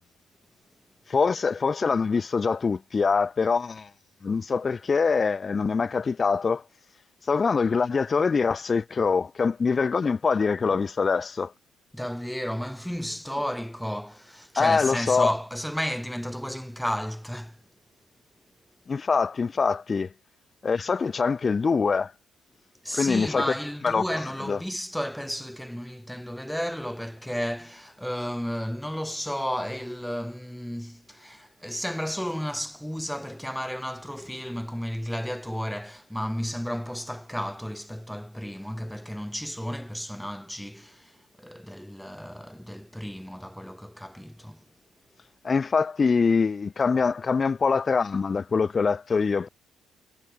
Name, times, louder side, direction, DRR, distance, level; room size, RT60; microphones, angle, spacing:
voice 1, 1.1-3.9 4.2-6.6 7.3-11.5 14.6-15.3 18.9-20.1 20.6-22.1 22.9-23.5 23.8-24.0 24.5-24.6 45.4-49.5, left 5 dB, 40° left, 5.9 m, -24 dB
voice 2, 11.9-17.6 22.8-44.6, equal, ahead, 5.9 m, -33 dB
supercardioid pair, 65°, 0 cm